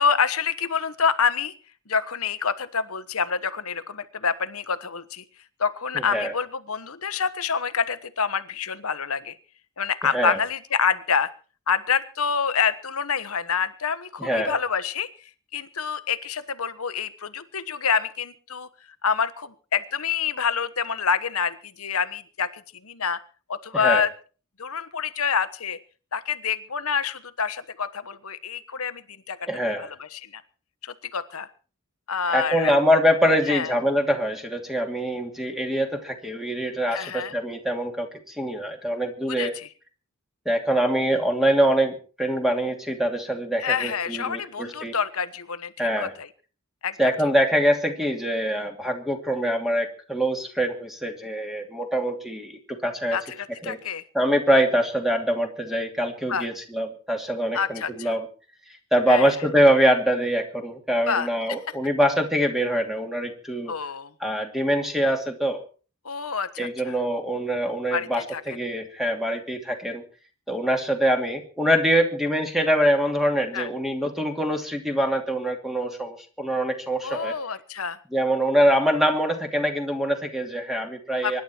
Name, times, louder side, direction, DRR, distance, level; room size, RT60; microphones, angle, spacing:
voice 1, 0.0-1.5 1.9-5.2 5.6-9.3 9.8-11.3 11.7-18.7 19.0-23.2 23.5-24.1 24.6-25.8 26.1-29.5 29.8-30.4 30.8-31.5 32.1-32.7 33.5-33.7 36.9-37.3 39.4-39.7 43.6-46.3 46.8-47.0 53.1-54.0 56.3-56.5 57.5-58.1 59.1-59.3 61.1-61.3 63.7-64.1 66.0-66.9 67.9-68.4 73.5-73.7 77.0-78.0 81.2-81.4, left 6 dB, 70° left, 14 dB, 1.2 m, -27 dB
voice 2, 5.9-6.3 10.1-10.4 14.2-14.6 23.7-24.0 29.5-29.9 32.3-39.5 40.4-44.9 45.8-46.1 47.0-53.2 53.6-53.8 54.1-58.3 58.9-63.7 64.2-65.6 66.6-70.0 70.5-77.3 78.1-81.4, equal, ahead, 4 dB, 2.7 m, -24 dB
24.5 x 11.0 x 4.5 m, 0.38 s
head